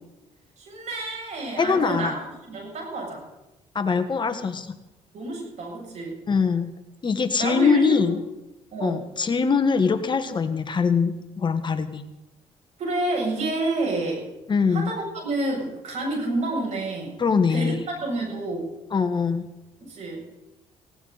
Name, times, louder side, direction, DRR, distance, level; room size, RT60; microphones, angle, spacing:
voice 1, 0.6-2.2 2.5-3.2 5.1-6.2 7.4-8.2 8.7-9.0 12.8-14.3 14.7-17.2 17.5-18.7 19.8-20.2, right 2 dB, 65° right, -1 dB, 7.4 m, -29 dB
voice 2, 1.6-2.1 3.7-4.7 6.3-6.7 7.0-8.2 8.8-12.0 14.5-14.9 17.2-17.8 18.9-19.5, left 5 dB, 35° left, 8 dB, 1.5 m, -22 dB
19.0 x 17.0 x 4.1 m, 0.97 s
cardioid pair, 90°, 13 cm